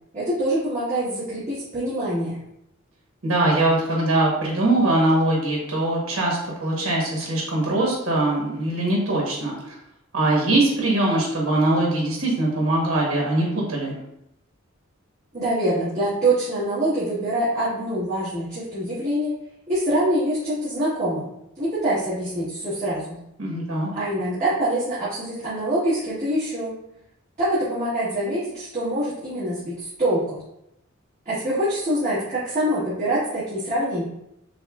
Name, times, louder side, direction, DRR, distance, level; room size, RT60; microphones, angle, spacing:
voice 1, 0.1-2.4 15.3-19.3 19.7-21.3 21.6-23.2 23.9-26.8 27.4-30.4 31.2-34.0, right 1 dB, 35° right, -12 dB, 1.3 m, -25 dB
voice 2, 3.2-9.7 10.1-14.0 23.4-23.9, right 2 dB, 75° right, -3 dB, 1.0 m, -22 dB
6.2 x 2.1 x 2.3 m, 0.81 s
head